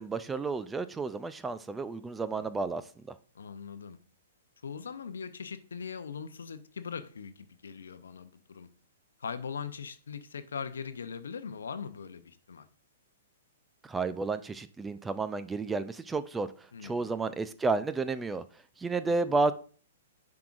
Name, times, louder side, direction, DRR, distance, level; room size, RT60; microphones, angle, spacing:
voice 1, 0.0-2.8 3.1-3.2 13.8-16.5 16.8-18.4 18.8-19.5, right 3 dB, 10° right, 0.4 m, -31 dB
voice 2, 3.3-4.0 4.6-8.7 9.2-12.7 16.7-17.1 19.1-19.3, left 6 dB, 70° left, 0.6 m, -41 dB
10.5 x 4.8 x 2.5 m
figure-of-eight pair, 110°, 0 cm